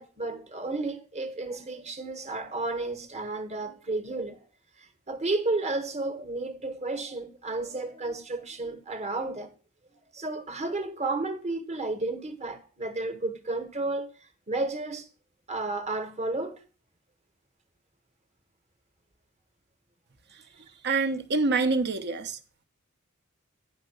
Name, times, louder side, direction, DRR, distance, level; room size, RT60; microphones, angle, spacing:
voice 1, 0.0-4.4 5.1-9.5 10.1-14.1 14.5-15.1 15.5-16.6, right 2 dB, 35° right, 1.3 m, -32 dB
voice 2, 20.8-22.4, right 3 dB, 55° right, 1.0 m, -26 dB
10.0 x 5.5 x 6.5 m
head